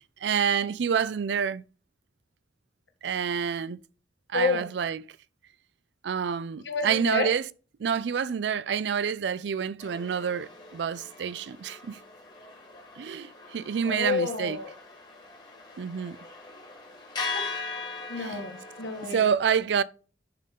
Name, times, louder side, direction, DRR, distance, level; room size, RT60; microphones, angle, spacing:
voice 1, 0.0-1.6 3.0-3.8 4.3-5.0 6.0-7.4 7.8-12.0 13.0-14.6 15.8-16.2 18.2-18.4 19.1-19.8, right 7 dB, 80° right, 0.4 m, -28 dB
voice 2, 4.3-4.7 6.6-7.3 13.8-14.7 17.3-17.4 17.8-19.3, left 4 dB, 85° left, 1.6 m, -30 dB
sound 1, 9.8-19.1, left 4 dB, 25° left, 2.1 m, -40 dB
10.5 x 3.8 x 3.6 m
head